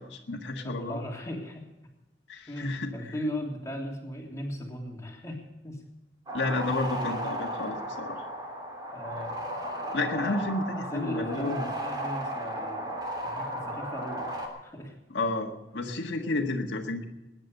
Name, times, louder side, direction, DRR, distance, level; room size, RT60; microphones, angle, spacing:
voice 1, 0.0-1.0 2.3-2.9 6.3-8.2 9.9-11.7 15.1-17.1, left 2 dB, 85° left, 2 dB, 1.7 m, -31 dB
voice 2, 0.6-1.7 2.5-5.8 8.9-9.5 10.1-10.5 10.9-12.9 13.2-14.2 14.6-14.9, equal, 20° left, -1 dB, 3.3 m, -37 dB
sound 1, 6.3-14.5, right 1 dB, 25° right, 3.1 m, -35 dB
20.5 x 10.0 x 6.7 m, 1.0 s
head